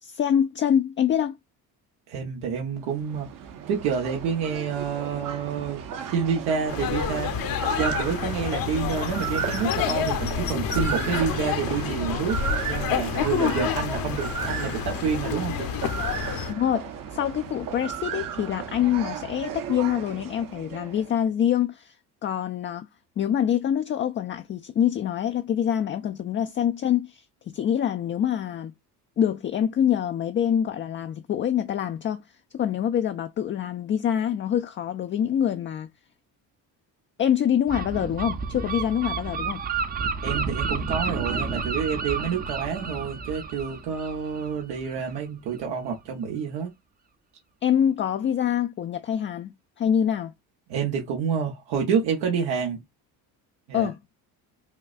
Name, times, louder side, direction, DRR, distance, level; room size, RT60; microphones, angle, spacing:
voice 1, 0.0-1.4 16.5-22.0 22.2-22.9 23.2-28.7 29.2-32.2 32.5-35.9 37.2-39.6 47.6-50.3 53.7-54.0, left 9 dB, 30° left, 0.4 m, -25 dB
voice 2, 2.1-3.3 3.7-7.3 7.8-12.4 12.7-15.7 40.2-46.7 50.7-52.8 53.7-53.9, right 6 dB, 90° right, 1.3 m, -28 dB
sound 1, 2.8-21.2, right 8 dB, 55° right, 1.0 m, -35 dB
sound 2, 6.7-16.5, left 8 dB, 60° left, 0.9 m, -28 dB
Gull seagull, 37.7-45.2, right 5 dB, 25° right, 0.6 m, -31 dB
5.7 x 2.2 x 2.4 m
cardioid pair, 105°, 38 cm